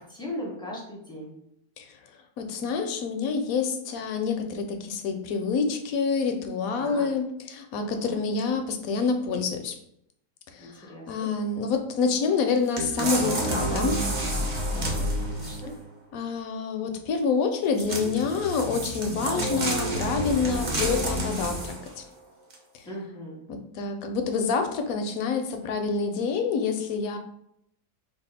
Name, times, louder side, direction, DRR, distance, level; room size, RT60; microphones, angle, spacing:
voice 1, 0.1-1.3 6.7-7.1 7.9-8.2 10.6-11.3 14.6-15.1 15.4-15.7 22.8-23.4, left 1 dB, 5° left, -4 dB, 0.5 m, -38 dB
voice 2, 2.4-9.7 10.5-14.0 16.1-22.0 22.8-22.9 23.5-27.2, left 5 dB, 70° left, 5 dB, 0.9 m, -27 dB
sound 1, 12.8-15.7 17.7-21.9 22.5-22.6, right 1 dB, 40° right, 0.6 m, -29 dB
3.5 x 2.3 x 4.0 m, 0.74 s
omnidirectional pair, 1.7 m